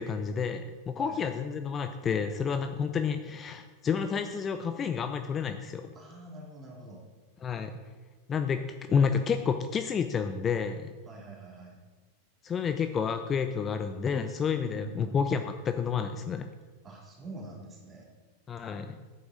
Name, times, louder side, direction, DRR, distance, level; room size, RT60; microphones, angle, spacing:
voice 1, 0.0-5.9 7.4-7.7 8.3-8.6 8.9-10.9 12.4-16.5 18.5-19.0, left 6 dB, 25° left, 8 dB, 0.5 m, -30 dB
voice 2, 5.9-7.0 11.0-11.8 14.5-15.2 16.8-18.1, right 2 dB, 20° right, -1 dB, 2.5 m, -45 dB
9.5 x 7.8 x 4.0 m, 1.4 s
figure-of-eight pair, 90°, 0 cm